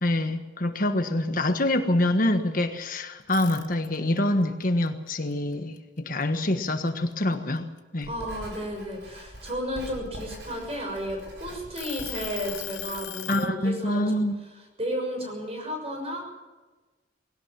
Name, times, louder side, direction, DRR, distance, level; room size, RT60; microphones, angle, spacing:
voice 1, 0.0-7.7 7.9-8.1 13.3-14.4, left 1 dB, 45° left, 6 dB, 1.4 m, -25 dB
sound 1, 3.2-4.2 4.6-6.4 6.9-7.1 7.6-9.4 10.1-11.2 11.8-13.5, left 14 dB, 75° left, 1.0 m, -39 dB
Writing, 8.0-13.0, equal, 70° right, 7.6 m, -43 dB
voice 2, 8.1-14.2 14.8-16.2, equal, 35° right, 3 dB, 6.5 m, -33 dB
21.0 x 17.5 x 7.5 m, 1.2 s
head